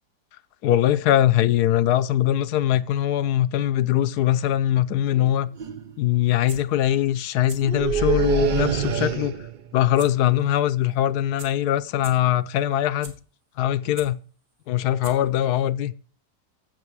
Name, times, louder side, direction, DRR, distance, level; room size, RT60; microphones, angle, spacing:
voice 1, 0.6-5.5 6.0-9.3 9.7-13.1 13.6-14.2 14.7-15.9, left 12 dB, 70° left, 1.2 m, -22 dB
sound 1, 5.1-5.3 5.6-5.9 7.6-9.6, right 7 dB, 85° right, 0.4 m, -25 dB
sound 2, 6.3-6.6 7.3-7.6 8.0-8.1 10.0-10.1 10.4-10.5 11.1-11.2 11.4-11.5 11.9-12.1 12.7-13.1 13.6-14.1 14.7-14.8 15.0-15.4 15.7-15.8, right 3 dB, 60° right, 2.6 m, -40 dB
11.0 x 7.5 x 4.7 m
omnidirectional pair, 1.8 m